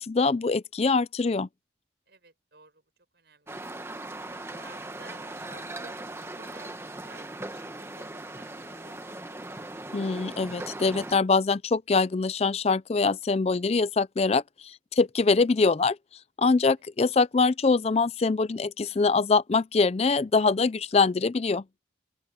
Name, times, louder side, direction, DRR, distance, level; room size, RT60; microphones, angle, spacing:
voice 1, 0.0-1.5 9.9-16.0 16.4-21.6, left 4 dB, 35° left, 0.4 m, -24 dB
voice 2, 2.1-2.8 3.1-3.6 4.3-9.8 18.8-19.1, right 3 dB, 60° right, 6.5 m, -54 dB
sound 1, 3.5-11.2, right 2 dB, 15° right, 1.0 m, -39 dB
open air
head